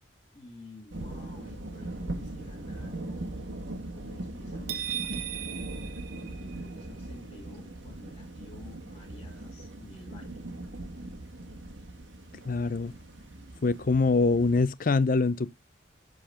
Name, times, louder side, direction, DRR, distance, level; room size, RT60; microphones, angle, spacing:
voice 1, 0.3-3.4 3.9-10.4, left 1 dB, 25° left, 1.9 m, -51 dB
sound 1, 0.9-14.7, right 1 dB, 80° right, 1.5 m, -40 dB
sound 2, 4.7-6.9, right 11 dB, 55° right, 1.1 m, -37 dB
voice 2, 12.4-12.9 13.6-15.5, left 3 dB, 45° left, 0.5 m, -24 dB
11.5 x 3.9 x 5.6 m
head